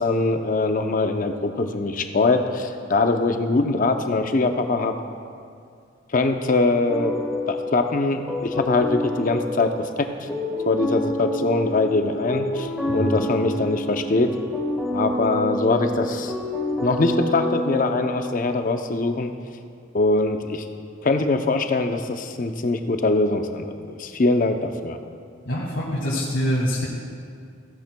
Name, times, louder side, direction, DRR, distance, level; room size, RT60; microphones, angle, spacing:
voice 1, 0.0-4.9 6.1-7.1 7.5-10.3 10.6-14.3 14.9-16.3 16.8-19.3 19.9-20.6 21.0-25.0, left 2 dB, 40° left, 6 dB, 0.6 m, -22 dB
sound 1, 6.9-18.6, left 1 dB, ahead, 1.0 m, -28 dB
voice 2, 12.9-13.2 25.4-26.8, equal, 65° left, -6 dB, 1.7 m, -25 dB
15.5 x 10.5 x 2.3 m, 2.3 s
head